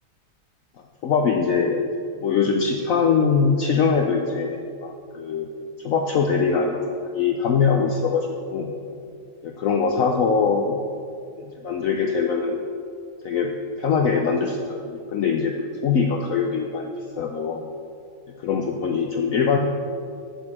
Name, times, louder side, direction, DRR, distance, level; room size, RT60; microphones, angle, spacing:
voice 1, 1.0-1.8 2.2-5.5 5.8-8.7 9.4-10.8 11.4-12.6 13.2-13.5 13.8-16.9 17.2-17.6 18.4-19.6, left 5 dB, 65° left, 3 dB, 0.9 m, -22 dB
9.5 x 6.9 x 5.9 m, 2.5 s
omnidirectional pair, 1.9 m